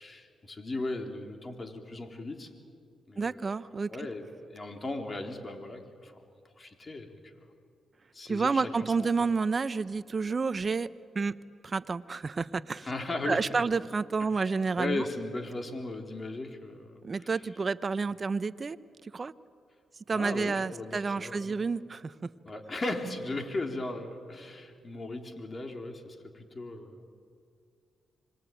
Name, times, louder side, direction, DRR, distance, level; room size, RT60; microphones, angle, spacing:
voice 1, 0.0-2.5 3.1-3.4 3.9-4.2 4.5-6.1 6.6-7.2 8.1-9.1 12.8-13.5 14.3-17.0 20.1-21.6 22.5-27.1, left 2 dB, 35° left, 4 dB, 3.7 m, -37 dB
voice 2, 3.2-4.1 8.3-10.9 11.1-11.3 11.6-12.9 13.2-15.1 17.0-18.8 19.0-19.3 20.1-22.3, right 4 dB, 40° right, 15 dB, 0.9 m, -30 dB
25.5 x 22.5 x 9.2 m, 2.3 s
supercardioid pair, 55°, 0 cm